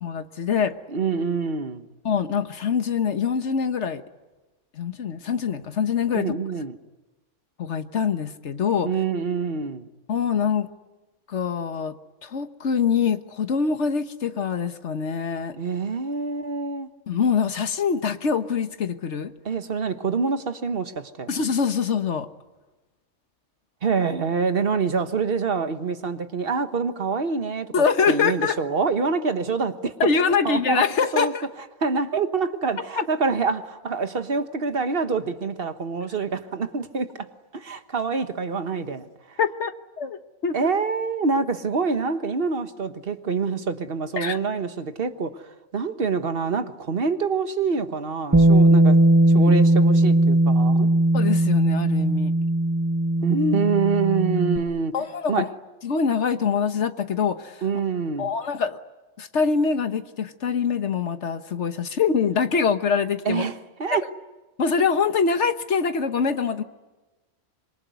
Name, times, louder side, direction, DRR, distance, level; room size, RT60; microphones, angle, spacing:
voice 1, 0.0-0.8 2.0-4.0 4.7-6.3 7.6-8.9 10.1-10.7 11.3-11.9 12.2-15.6 17.1-19.3 21.3-22.3 27.7-28.6 30.0-31.5 39.4-39.7 40.0-40.6 44.2-44.4 51.1-52.3 54.9-55.5 55.8-57.6 58.2-58.8 59.2-63.4 63.9-64.0 64.6-66.6, left 6 dB, 70° left, 1.5 m, -24 dB
voice 2, 0.9-1.9 6.1-6.8 8.8-9.9 15.6-16.9 19.4-21.3 23.8-30.1 30.4-30.8 31.1-31.3 31.8-37.3 37.5-39.1 40.5-49.0 49.3-50.9 53.2-54.9 55.3-55.5 57.6-58.3 63.2-64.1, right 5 dB, 50° right, 1.5 m, -26 dB
Bass guitar, 48.3-54.6, right 1 dB, 15° right, 1.2 m, -18 dB
26.0 x 22.5 x 9.4 m
omnidirectional pair, 1.3 m